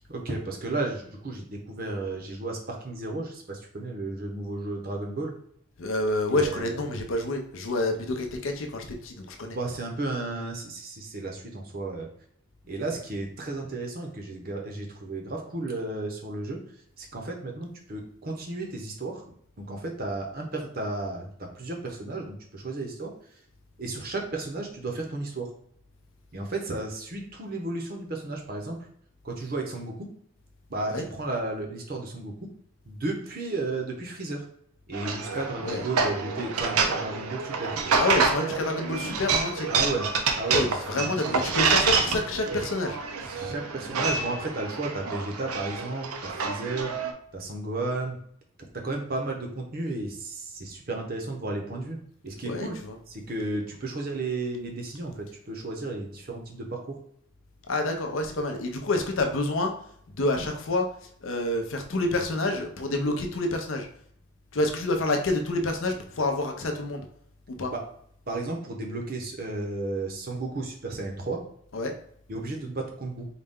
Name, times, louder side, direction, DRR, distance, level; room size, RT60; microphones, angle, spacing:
voice 1, 0.1-5.3 6.3-6.8 9.5-12.1 12.6-16.6 17.0-19.2 19.6-21.3 21.6-23.1 23.8-25.5 26.3-28.8 29.2-30.0 30.7-32.3 32.9-34.4 34.9-38.0 39.7-40.1 40.4-40.7 40.9-41.4 42.5-42.6 43.2-46.9 47.3-48.2 48.8-52.0 52.2-52.8 53.1-57.0 67.7-67.8 68.3-71.4 72.3-73.3, right 2 dB, 45° right, 1 dB, 0.7 m, -33 dB
voice 2, 5.8-9.6 30.9-31.0 35.6-35.8 38.0-39.7 40.5-43.0 52.5-53.0 57.7-59.7 60.2-60.9 61.2-63.9 64.5-67.1 67.5-67.7 71.7-71.9, left 2 dB, 65° left, 4 dB, 0.6 m, -28 dB
sound 1, 34.9-47.1, right 5 dB, 90° right, 0.5 m, -28 dB
4.0 x 2.2 x 3.5 m, 0.65 s
head